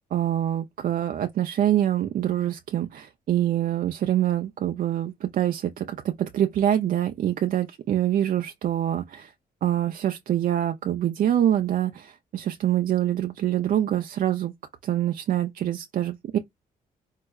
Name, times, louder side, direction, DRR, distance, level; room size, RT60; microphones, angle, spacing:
voice 1, 0.1-9.3 9.6-14.5 14.8-16.4, right 11 dB, 55° right, 0.4 m, -25 dB
4.6 x 2.1 x 2.3 m
cardioid pair, 125°, 17 cm